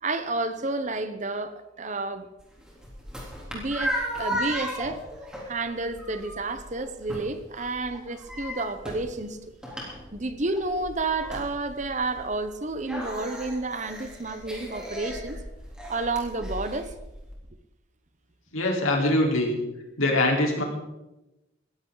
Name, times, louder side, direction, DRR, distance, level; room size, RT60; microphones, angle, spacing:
voice 1, 0.0-2.3 3.5-5.0 5.5-9.4 10.1-15.4 15.9-16.9, right 2 dB, 35° right, 11 dB, 0.9 m, -30 dB
sound 1, 2.4-17.3, equal, 5° right, 3.4 m, -36 dB
voice 2, 18.5-19.6 20.0-20.6, left 1 dB, 85° left, 0 dB, 4.1 m, -23 dB
20.5 x 14.5 x 4.0 m, 0.99 s
head